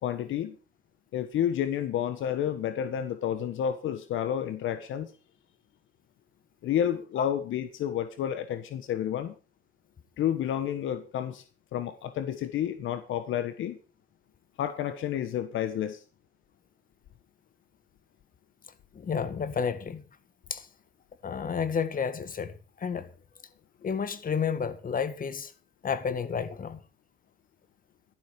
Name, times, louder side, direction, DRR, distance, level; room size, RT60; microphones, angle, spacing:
voice 1, 0.0-0.6 1.1-5.1 6.6-9.3 10.2-11.4 11.7-13.8 14.6-16.0, left 10 dB, 80° left, 1.4 m, -30 dB
voice 2, 18.9-20.0 20.5-20.7 21.2-23.1 23.8-25.5 25.8-26.8, left 6 dB, 45° left, 1.9 m, -31 dB
13.0 x 12.5 x 5.3 m
cardioid pair, 90°, 20 cm